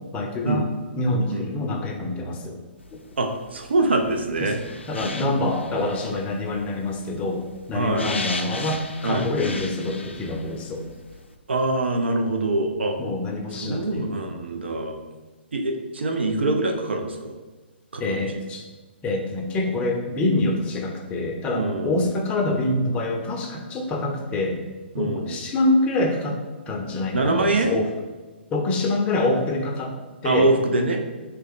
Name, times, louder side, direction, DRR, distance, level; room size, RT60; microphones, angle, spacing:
voice 1, 0.1-0.6 1.0-2.6 4.4-4.5 4.9-10.9 13.0-14.1 18.0-18.6 19.0-24.6 25.0-26.4 26.7-27.9 28.5-29.9 30.2-30.5, left 2 dB, 20° left, 2 dB, 0.5 m, -25 dB
sound 1, 2.8-11.4, left 3 dB, 80° left, 0.4 m, -38 dB
voice 2, 3.2-4.6 7.7-8.2 9.0-9.2 11.5-13.0 13.5-15.0 15.5-17.3 17.9-18.2 21.5-22.1 24.9-25.4 27.1-27.7 30.2-31.0, right 2 dB, 70° right, 4 dB, 0.5 m, -24 dB
3.3 x 2.8 x 3.5 m, 1.2 s
figure-of-eight pair, 120°, 6 cm